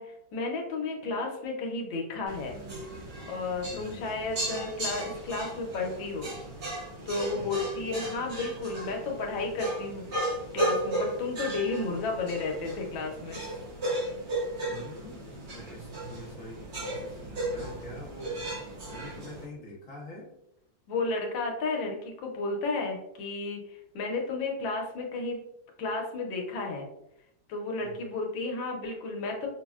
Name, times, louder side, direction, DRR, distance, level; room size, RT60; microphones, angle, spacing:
voice 1, 0.0-2.5 3.3-6.3 7.1-10.2 10.5-13.4 20.9-25.4 25.8-26.9 27.5-29.5, left 3 dB, 85° left, 1 dB, 1.5 m, -32 dB
sound 1, 2.3-19.4, right 1 dB, 75° right, 2.4 m, -35 dB
voice 2, 3.7-4.1 7.3-7.6 14.7-18.4 18.8-20.3 27.8-28.1, left 1 dB, 55° left, -2 dB, 1.0 m, -46 dB
5.6 x 2.0 x 2.3 m, 0.80 s
omnidirectional pair, 2.1 m